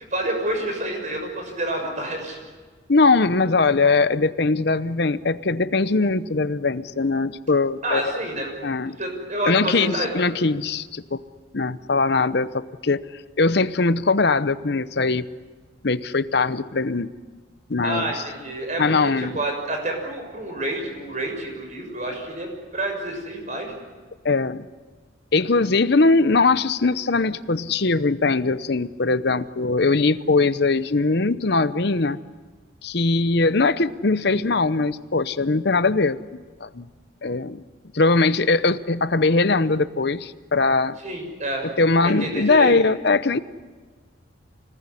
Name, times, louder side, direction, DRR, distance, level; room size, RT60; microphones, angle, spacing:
voice 1, 0.1-2.4 7.8-8.5 9.0-10.1 17.8-23.7 41.0-41.7 42.0-42.9, right 1 dB, 40° right, 3 dB, 6.6 m, -28 dB
voice 2, 2.9-8.1 8.6-9.0 9.5-11.2 11.5-13.0 13.4-15.3 15.8-17.1 17.7-18.2 18.8-19.4 24.2-24.7 25.3-32.2 32.8-36.9 37.2-37.6 37.9-41.0 41.6-43.4, left 3 dB, 55° left, 14 dB, 0.8 m, -21 dB
26.0 x 19.0 x 9.9 m, 1.4 s
head